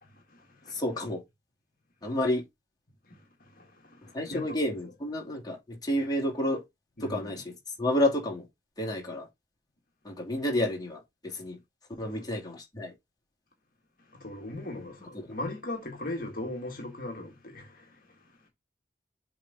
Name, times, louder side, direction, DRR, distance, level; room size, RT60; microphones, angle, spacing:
voice 1, 0.0-0.8 3.0-4.6 7.0-7.4 12.0-12.3 14.0-18.5, left 1 dB, 55° left, 1.7 m, -40 dB
voice 2, 0.7-1.2 2.0-2.5 4.1-6.6 7.0-7.5 7.8-8.4 8.8-9.3 10.0-11.6 12.0-12.9 15.1-15.4, left 1 dB, 25° left, 2.7 m, -30 dB
7.3 x 3.8 x 3.9 m
head